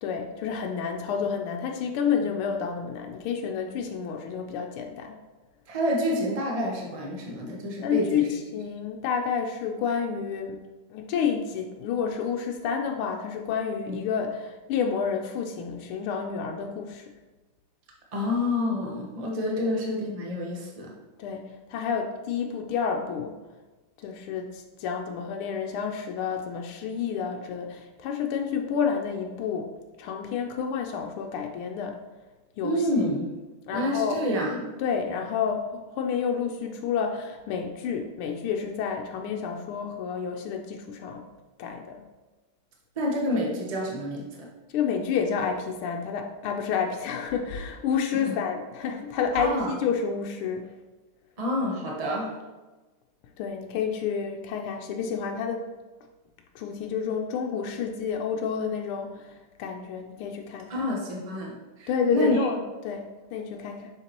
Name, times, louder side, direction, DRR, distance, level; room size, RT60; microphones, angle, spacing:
voice 1, 0.0-5.2 7.8-10.6 10.9-17.1 19.6-19.7 21.2-21.4 21.7-23.3 24.0-29.7 30.0-32.0 32.6-32.9 33.7-34.2 34.8-41.2 41.6-42.0 44.7-50.7 53.4-55.6 56.5-60.9 61.9-63.9, left 6 dB, 80° left, 2 dB, 1.5 m, -29 dB
voice 2, 5.7-8.3 13.9-14.0 18.1-20.9 32.6-33.4 33.7-34.7 43.0-44.5 48.2-48.4 49.3-49.7 51.4-52.3 60.7-62.4, left 1 dB, 65° right, -2 dB, 0.3 m, -28 dB
6.7 x 5.7 x 2.9 m, 1.2 s
omnidirectional pair, 2.4 m